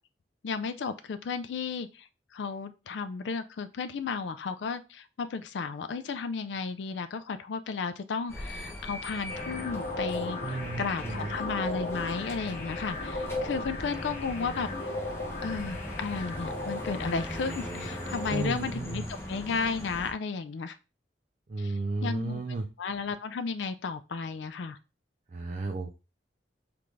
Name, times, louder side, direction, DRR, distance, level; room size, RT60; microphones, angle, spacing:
voice 1, 0.4-2.1 2.3-14.9 15.4-19.0 19.3-20.8 21.6-21.7 22.0-22.4 22.8-24.8, left 5 dB, 85° left, 10 dB, 0.4 m, -34 dB
sound 1, 8.3-20.1, equal, 15° left, 0.9 m, -40 dB
sound 2, 9.3-18.5, left 2 dB, 50° left, 1.0 m, -36 dB
voice 2, 10.4-11.3 18.3-19.1 21.5-22.7 25.3-25.9, right 3 dB, 40° right, 2 dB, 0.4 m, -33 dB
3.8 x 3.4 x 3.2 m, 0.30 s
head